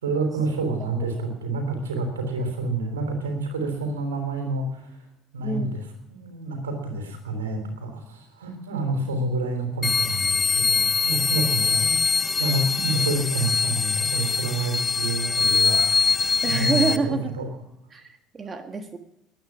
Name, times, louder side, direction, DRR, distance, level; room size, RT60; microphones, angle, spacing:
voice 1, 0.0-5.0 5.3-5.8 6.1-17.5, right 2 dB, 90° right, 4 dB, 3.5 m, -28 dB
voice 2, 5.4-5.8 16.4-17.3 17.9-19.0, right 4 dB, 30° right, 7 dB, 1.5 m, -27 dB
sound 1, 9.8-17.0, left 5 dB, 25° left, 0.6 m, -23 dB
21.5 x 9.4 x 6.0 m, 0.90 s
hypercardioid pair, 65°, 0 cm